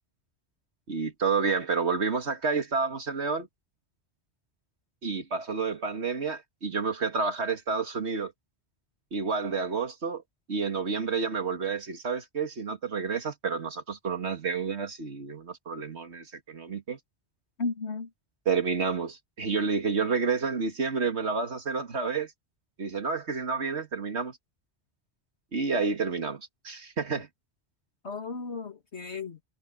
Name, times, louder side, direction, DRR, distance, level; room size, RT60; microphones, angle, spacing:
voice 1, 0.9-3.5 5.0-8.3 9.1-10.2 10.5-17.0 18.5-22.3 22.8-24.4 25.5-27.3, right 5 dB, 90° right, 2.3 m, -30 dB
voice 2, 17.6-18.1 28.0-29.4, left 4 dB, 80° left, 2.7 m, -34 dB
omnidirectional pair, 1.1 m